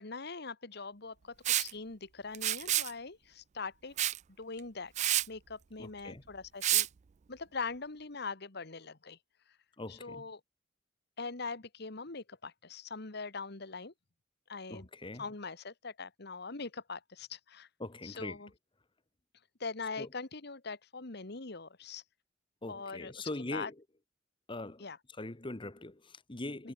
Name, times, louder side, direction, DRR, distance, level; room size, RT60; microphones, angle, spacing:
voice 1, 0.0-4.0 4.4-4.9 5.3-6.9 7.3-9.2 9.9-10.4 11.2-13.9 14.5-14.9 15.2-17.7 18.0-18.5 19.6-22.0 22.7-23.7 24.8-25.0 26.6-26.7, left 4 dB, 60° left, 1.7 m, -42 dB
Liquid, 1.4-1.7 2.3-2.9 4.0-4.2 4.6-4.7 5.0-5.3 6.6-6.9, right 13 dB, 40° right, 0.3 m, -28 dB
voice 2, 5.8-6.2 9.8-10.3 14.7-15.3 17.8-18.4 20.0-20.1 22.6-23.7 24.5-24.8 25.2-26.7, left 2 dB, 25° left, 1.2 m, -41 dB
head